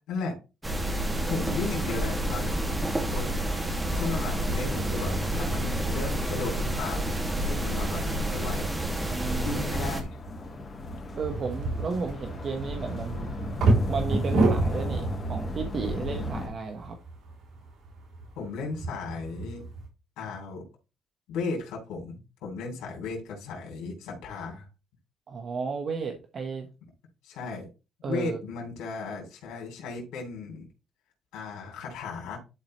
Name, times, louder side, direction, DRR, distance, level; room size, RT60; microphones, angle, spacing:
sound 1, 0.6-10.0, right 1 dB, 15° right, 2.2 m, -29 dB
voice 1, 1.3-2.6 3.1-3.3 3.9-8.7 9.4-10.2 18.3-19.6 20.2-20.7 21.3-24.7 27.2-27.7 28.1-30.7 31.3-32.4, left 4 dB, 90° left, 0 dB, 3.0 m, -35 dB
sound 2, 1.9-16.5, equal, 30° left, 3.2 m, -36 dB
voice 2, 9.1-9.7 11.1-13.3 13.9-17.0 25.3-26.7 28.0-28.4, right 5 dB, 50° right, 3 dB, 1.3 m, -33 dB
sound 3, 11.2-19.9, right 2 dB, 75° right, 3.2 m, -30 dB
11.5 x 4.8 x 3.2 m, 0.30 s
cardioid pair, 90°, 0 cm